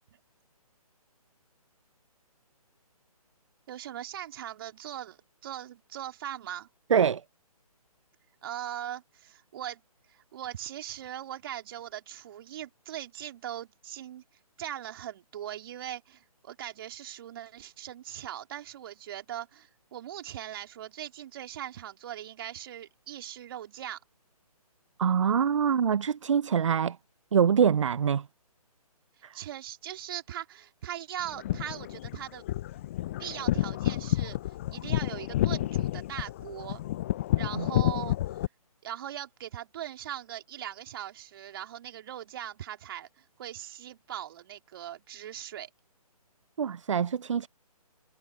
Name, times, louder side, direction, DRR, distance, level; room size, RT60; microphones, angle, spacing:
voice 1, 3.7-6.7 8.4-9.8 10.1-14.2 14.6-24.0 29.3-32.5 33.2-36.8 37.4-38.5 38.8-45.7, right 11 dB, 35° right, 3.6 m, -40 dB
voice 2, 6.9-7.2 25.0-27.0 27.3-28.3 29.2-29.4 37.5-37.7 46.6-47.5, right 7 dB, 55° right, 0.6 m, -24 dB
sound 1, 31.2-38.5, left 14 dB, 20° left, 0.5 m, -30 dB
figure-of-eight pair, 145°, 20 cm